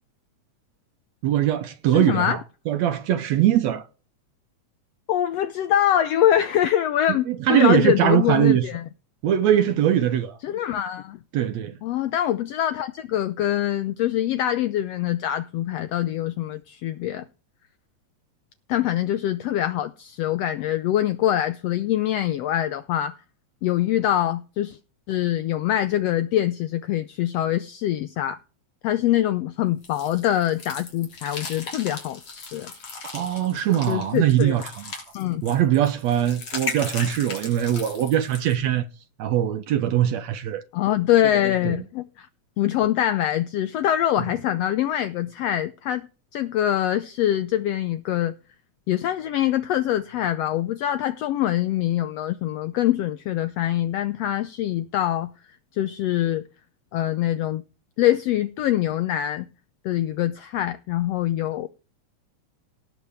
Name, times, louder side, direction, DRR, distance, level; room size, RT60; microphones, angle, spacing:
voice 1, 1.2-3.8 7.3-8.7 9.2-10.4 11.3-11.7 33.0-34.8 35.4-38.9 39.2-40.6 41.6-41.8, right 11 dB, 70° right, 1.9 m, -21 dB
voice 2, 1.9-2.4 5.1-8.8 10.4-11.2 11.8-17.2 18.7-23.2 23.6-24.8 25.1-28.4 28.8-32.7 33.9-34.6 35.1-35.4 40.7-42.3 42.6-46.1 46.3-48.3 48.9-55.3 55.7-56.4 56.9-57.6 58.0-59.5 59.8-61.7, left 12 dB, 75° left, 1.6 m, -24 dB
sound 1, 29.8-38.5, left 4 dB, 55° left, 4.4 m, -37 dB
18.5 x 7.5 x 3.5 m
omnidirectional pair, 3.4 m